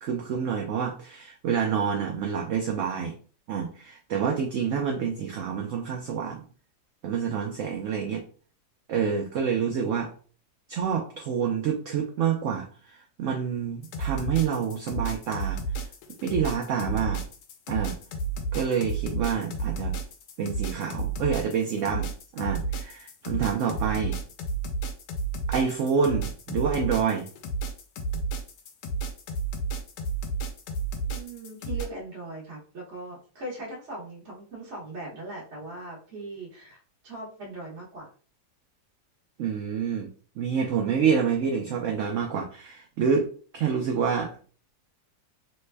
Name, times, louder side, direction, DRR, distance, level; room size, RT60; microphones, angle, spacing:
voice 1, 0.0-3.1 3.5-6.4 7.0-8.2 8.9-10.1 10.7-15.6 16.2-17.2 17.7-18.0 18.5-20.0 20.4-24.2 25.5-27.3 39.4-40.1 40.4-43.3 43.5-44.4, right 7 dB, 75° right, 2 dB, 0.7 m, -27 dB
sound 1, 13.8-31.8, right 3 dB, 85° left, 1.2 m, -31 dB
voice 2, 31.1-38.1, right 2 dB, 50° right, -5 dB, 1.2 m, -40 dB
3.3 x 2.1 x 3.2 m, 0.41 s
omnidirectional pair, 1.8 m